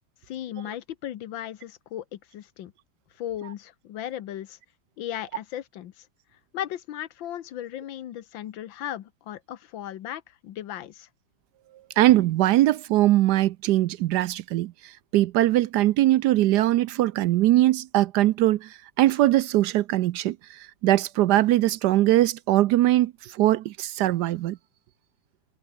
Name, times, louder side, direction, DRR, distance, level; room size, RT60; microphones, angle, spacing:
voice 1, 0.3-2.7 3.2-4.6 5.0-6.1 6.5-11.1, left 11 dB, 75° left, 1.7 m, -36 dB
voice 2, 12.0-24.6, right 15 dB, 70° right, 1.0 m, -21 dB
omnidirectional pair, 2.1 m